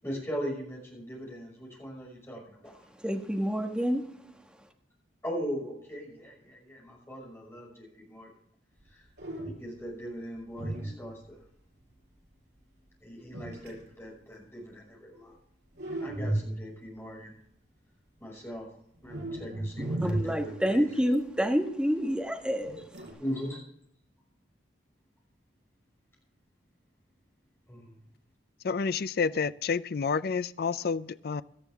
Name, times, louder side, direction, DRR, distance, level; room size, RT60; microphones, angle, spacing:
voice 1, 0.0-2.8 5.2-8.3 8.9-9.1 9.4-11.4 13.0-15.3 16.0-17.3 18.2-18.7 19.0-20.9 23.2-23.6 27.7-28.0, equal, 15° left, 5.8 m, -39 dB
voice 2, 3.0-4.0 20.0-22.9, equal, 5° right, 1.4 m, -28 dB
sound 1, 8.8-8.9 9.2-9.8 10.5-11.4 13.3-13.9 15.8-16.9 19.0-21.2 22.6-23.1, right 1 dB, 60° right, 5.1 m, -35 dB
voice 3, 28.6-31.4, left 5 dB, 55° left, 0.4 m, -29 dB
17.0 x 12.5 x 3.5 m
head